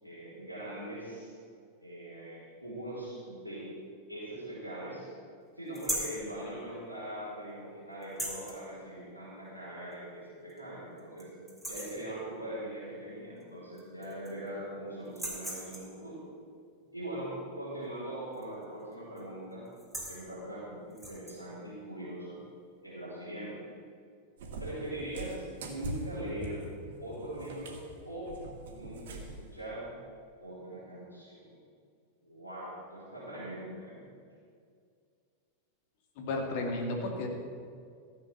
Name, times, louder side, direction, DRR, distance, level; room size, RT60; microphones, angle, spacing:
voice 1, 0.0-1.4 1.8-3.7 4.1-5.1 5.6-11.3 11.6-16.2 16.9-19.7 20.1-22.4 22.8-23.6 24.6-26.6 27.0-27.8 28.0-28.3 28.7-29.9 30.4-31.5 32.2-34.0, right 1 dB, 90° left, -9 dB, 4.2 m, -41 dB
sound 1, 5.7-6.2 8.0-8.6 9.9-10.0 10.5-10.6 11.0-11.2 11.5-12.0 13.4-13.5 13.8-14.5 15.1-16.0 18.3-18.6 18.9-19.2 19.7-20.2 20.9-21.4, right 1 dB, ahead, 3.1 m, -38 dB
Cat, 24.4-29.5, right 2 dB, 55° right, 1.8 m, -43 dB
voice 2, 36.2-37.3, left 2 dB, 50° left, 2 dB, 2.3 m, -33 dB
15.0 x 7.3 x 7.3 m, 2.2 s
figure-of-eight pair, 90°, 0 cm